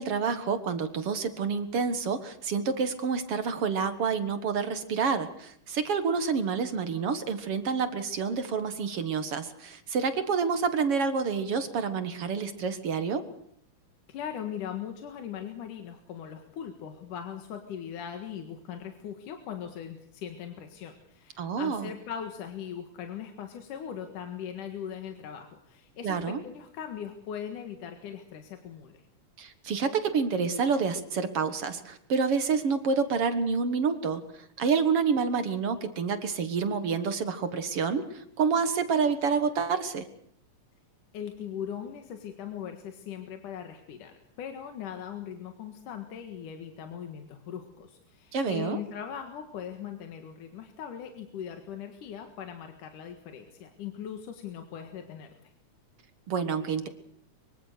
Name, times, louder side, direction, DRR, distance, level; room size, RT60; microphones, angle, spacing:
voice 1, 0.0-13.2 21.4-21.9 26.0-26.4 29.4-34.2 34.6-40.1 48.3-48.8 56.3-56.9, right 5 dB, 55° right, 10 dB, 2.1 m, -28 dB
voice 2, 14.1-29.0 41.1-55.3, left 8 dB, 80° left, 5 dB, 3.3 m, -40 dB
24.5 x 24.0 x 6.7 m, 0.66 s
omnidirectional pair, 3.6 m